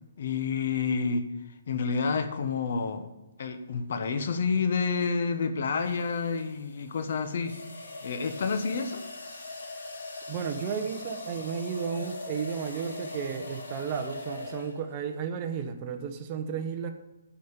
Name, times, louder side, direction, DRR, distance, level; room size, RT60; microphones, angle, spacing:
voice 1, 0.2-1.2 1.7-3.1 3.4-7.5 8.0-9.0, left 5 dB, 55° left, 8 dB, 1.1 m, -29 dB
sound 1, 3.9-4.2 5.8-15.0, left 2 dB, 90° left, 3.9 m, -41 dB
voice 2, 10.3-16.9, right 7 dB, 30° right, 6 dB, 1.0 m, -33 dB
10.0 x 5.2 x 8.2 m, 1.1 s
hypercardioid pair, 160°, 0 cm